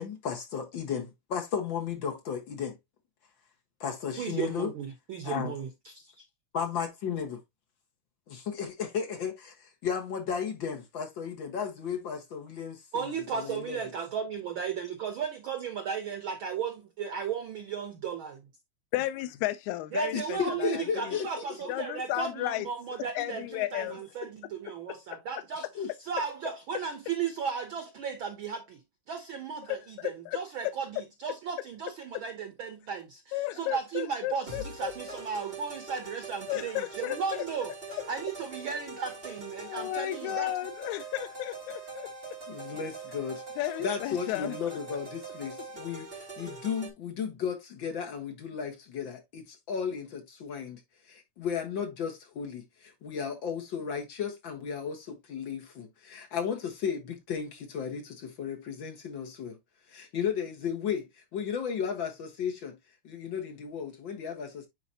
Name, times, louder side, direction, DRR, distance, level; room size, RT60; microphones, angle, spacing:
voice 1, 0.0-2.8 3.8-4.7 5.2-5.5 6.5-7.4 8.3-13.8 20.1-21.6 25.8-25.9 42.5-43.4 43.8-50.8 51.1-59.6 59.9-62.8 63.0-64.7, left 7 dB, 50° left, 1.7 m, -34 dB
voice 2, 4.2-6.2 12.9-18.4 19.9-25.7 26.0-37.7 38.1-40.5, right 6 dB, 85° right, 1.1 m, -35 dB
voice 3, 18.9-21.2 21.7-22.7 23.2-24.1 29.7-30.4 30.6-30.7 33.3-35.2 36.5-37.4 39.6-42.1 43.6-44.6, left 15 dB, 80° left, 2.0 m, -33 dB
sound 1, 34.5-46.9, right 3 dB, 20° right, 2.4 m, -43 dB
9.9 x 4.0 x 2.8 m
omnidirectional pair, 3.5 m